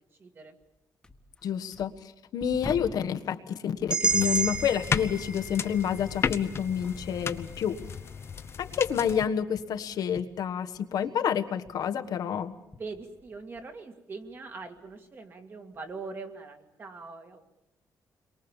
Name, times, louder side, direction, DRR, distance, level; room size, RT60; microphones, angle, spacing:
voice 1, 0.2-0.6 12.8-17.4, right 4 dB, 35° right, 6 dB, 2.2 m, -42 dB
sound 1, 0.6-0.7 1.0-3.1 3.7-7.1 7.4-11.2 11.5-13.8 14.2-15.0 15.7-15.9, left 2 dB, 10° left, 1.5 m, -48 dB
voice 2, 1.4-7.8 8.6-12.5, left 8 dB, 70° left, 7 dB, 1.4 m, -29 dB
sound 2, 3.9-7.9, right 4 dB, 15° right, 0.9 m, -32 dB
sound 3, 4.1-9.3, left 6 dB, 40° left, 0.9 m, -34 dB
29.0 x 23.0 x 7.3 m, 0.85 s
wide cardioid pair, 165°, 7 cm